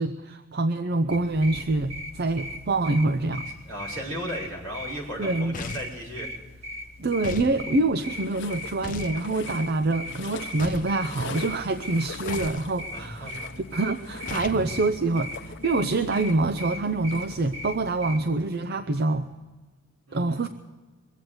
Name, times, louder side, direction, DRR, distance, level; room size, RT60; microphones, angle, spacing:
voice 1, 0.0-3.5 5.2-5.5 7.0-13.3 13.7-19.3 20.1-20.5, right 2 dB, 45° right, 8 dB, 0.5 m, -26 dB
sound 1, 1.1-18.2, left 1 dB, 30° right, 1.2 m, -40 dB
voice 2, 3.0-6.3 12.9-13.3 14.5-14.6 20.1-20.4, equal, 75° right, -4 dB, 5.6 m, -36 dB
sound 2, 5.5-6.0 7.2-7.6 8.8-9.2 10.6-11.0 12.3-12.6 14.3-14.6, left 3 dB, 35° left, 0.6 m, -35 dB
sound 3, 8.0-17.9, left 4 dB, 55° left, 0.9 m, -43 dB
22.5 x 8.3 x 7.8 m, 1.3 s
head